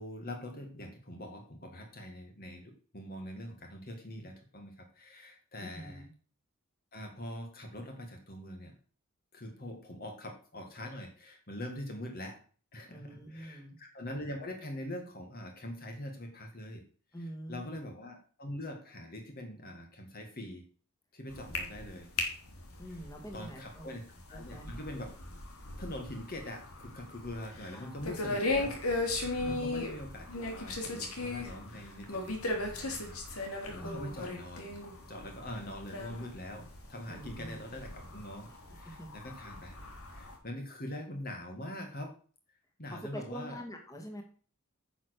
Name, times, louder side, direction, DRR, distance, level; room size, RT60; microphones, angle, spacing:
voice 1, 0.0-6.0 6.9-8.8 9.3-12.4 12.7-16.8 17.5-20.6 21.1-22.1 23.3-24.0 24.3-25.1 25.8-28.8 29.1-34.7 35.1-36.6 36.9-39.8 40.1-42.1 42.8-43.6, left 1 dB, 45° left, 3 dB, 2.0 m, -43 dB
voice 2, 5.6-6.1 12.9-13.8 17.1-17.8 22.8-23.9 24.3-24.7 27.7-28.2 29.4-29.8 33.8-34.2 37.1-37.6 38.8-39.1 42.9-44.2, equal, 15° left, 2 dB, 2.1 m, -45 dB
sound 1, 21.3-40.4, left 2 dB, 90° left, 2.9 m, -38 dB
10.0 x 6.5 x 6.6 m, 0.42 s
head